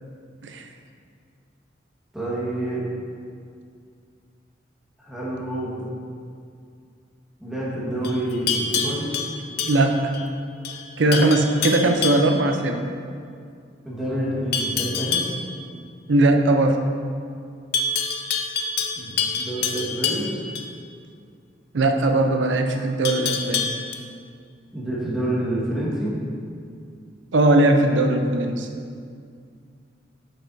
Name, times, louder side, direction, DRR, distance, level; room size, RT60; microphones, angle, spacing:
voice 1, 2.1-2.8 5.0-5.9 7.4-9.1 13.8-15.3 19.0-20.3 24.7-26.1, right 1 dB, 5° right, -8 dB, 1.5 m, -28 dB
Livestock farm animals working animals, 8.0-10.3 10.6-10.9 11.1-12.4 14.5-15.4 17.7-20.7 23.0-23.9, left 5 dB, 60° left, 0.5 m, -26 dB
voice 2, 9.7-10.1 11.0-12.8 16.1-16.8 21.7-23.7 27.3-28.7, right 2 dB, 80° right, 5 dB, 0.6 m, -19 dB
7.7 x 6.5 x 2.7 m, 2.3 s
head